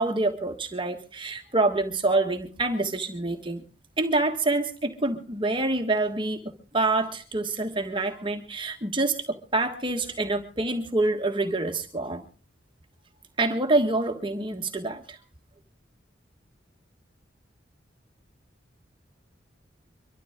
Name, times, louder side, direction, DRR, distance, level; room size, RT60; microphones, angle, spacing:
voice 1, 0.0-3.6 4.0-12.2 13.4-15.2, right 2 dB, 25° right, 4 dB, 1.4 m, -26 dB
24.0 x 13.0 x 3.6 m, 0.35 s
head